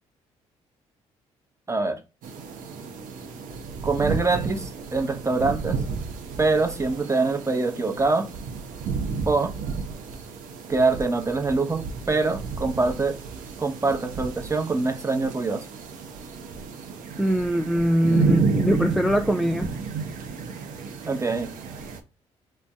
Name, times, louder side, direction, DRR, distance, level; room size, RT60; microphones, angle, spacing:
voice 1, 1.7-2.0 3.8-5.8 6.4-8.3 9.3-9.5 10.7-13.2 13.6-15.6 21.1-21.5, right 3 dB, 20° right, 0.8 m, -24 dB
sound 1, 2.2-22.0, right 5 dB, 60° right, 0.6 m, -32 dB
voice 2, 17.2-19.7, equal, ahead, 0.4 m, -22 dB
2.5 x 2.1 x 3.4 m
hypercardioid pair, 50°, 15 cm